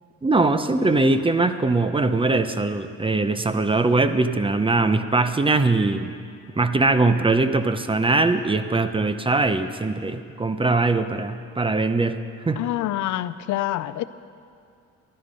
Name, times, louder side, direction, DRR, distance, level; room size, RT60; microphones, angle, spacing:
voice 1, 0.2-6.1 6.6-12.2 12.5-12.6, right 3 dB, 15° right, 10 dB, 0.6 m, -21 dB
voice 2, 12.6-14.0, left 14 dB, 75° left, 14 dB, 0.5 m, -26 dB
13.5 x 11.0 x 5.2 m, 2.5 s
cardioid pair, 90°, 30 cm